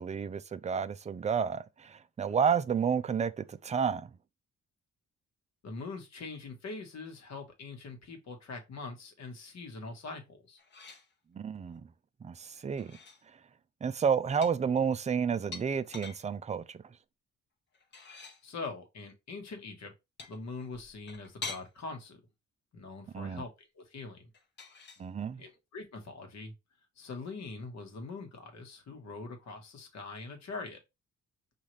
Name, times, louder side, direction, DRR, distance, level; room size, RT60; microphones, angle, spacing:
voice 1, 0.0-4.1 11.3-11.9 12.2-13.0 13.8-16.8 23.1-23.4 25.0-25.4, right 6 dB, 25° right, 0.4 m, -31 dB
voice 2, 5.6-10.6 18.4-19.9 20.3-22.2 22.7-23.5 23.8-24.3 25.4-26.5 27.0-30.8, left 3 dB, 60° left, 1.4 m, -43 dB
sound 1, 10.6-11.1 12.6-13.2 14.4-16.2 17.7-18.4 20.2-21.7 24.3-25.0, left 4 dB, 35° left, 0.9 m, -45 dB
5.5 x 2.4 x 3.3 m
cardioid pair, 110°, 31 cm